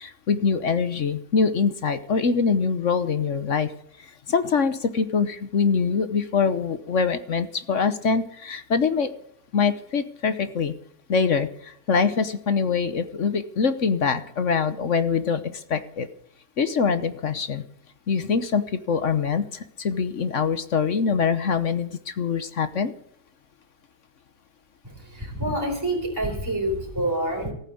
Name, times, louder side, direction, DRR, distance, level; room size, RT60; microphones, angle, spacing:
voice 1, 0.0-3.7 4.0-9.1 9.5-10.7 11.1-16.1 16.6-17.6 18.1-22.9, left 5 dB, 50° left, 11 dB, 1.2 m, -24 dB
voice 2, 24.8-27.5, right 1 dB, 10° right, -1 dB, 3.9 m, -27 dB
15.0 x 9.1 x 8.5 m, 0.66 s
omnidirectional pair, 1.9 m